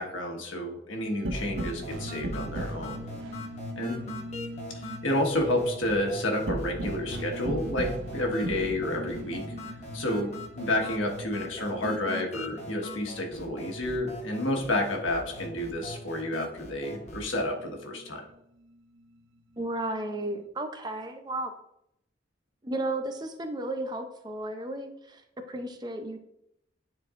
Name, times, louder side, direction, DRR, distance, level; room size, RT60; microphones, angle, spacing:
voice 1, 0.0-3.0 3.8-4.0 4.7-9.4 9.9-18.2, left 1 dB, 85° left, 1 dB, 1.5 m, -30 dB
sound 1, 1.0-14.0 14.3-16.2 16.5-18.2 18.6-20.4, right 1 dB, 80° right, 0.7 m, -40 dB
sound 2, 1.3-17.3, equal, 35° left, 1.0 m, -42 dB
voice 2, 19.6-21.5 22.6-26.2, right 1 dB, 20° right, 6 dB, 0.6 m, -34 dB
10.0 x 4.4 x 2.5 m, 0.79 s
head